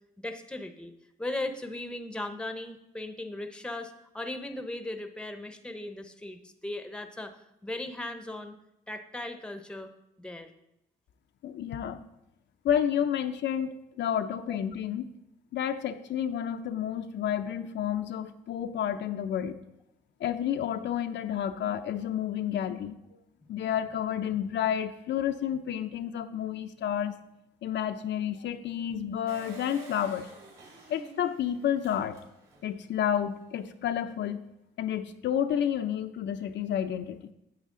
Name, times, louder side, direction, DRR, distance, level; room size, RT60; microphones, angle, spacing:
voice 1, 0.2-0.9 1.2-8.5 8.9-9.9 10.2-10.5, left 2 dB, 5° left, 8 dB, 0.8 m, -37 dB
voice 2, 11.4-12.0 12.6-15.1 15.5-19.5 20.2-23.0 23.5-27.1 27.6-30.3 30.9-32.2 32.6-34.4 34.8-37.2, left 9 dB, 65° left, 8 dB, 0.5 m, -30 dB
Engine, 29.3-32.7 33.2-33.3 33.5-33.6, right 4 dB, 70° right, 3.8 m, -49 dB
9.0 x 7.3 x 3.7 m, 0.86 s
cardioid pair, 90°, 20 cm